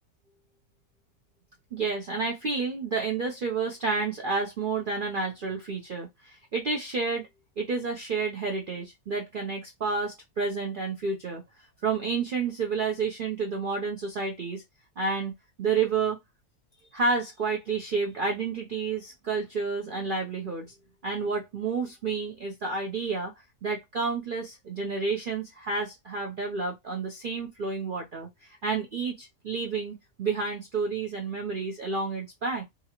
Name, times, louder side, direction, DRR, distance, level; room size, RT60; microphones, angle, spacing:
voice 1, 1.7-7.3 7.6-11.4 11.8-14.6 15.0-15.3 15.6-16.2 16.9-20.7 21.0-23.3 23.6-32.6, right 4 dB, 65° right, 0.5 m, -30 dB
2.8 x 2.5 x 2.8 m
omnidirectional pair, 1.6 m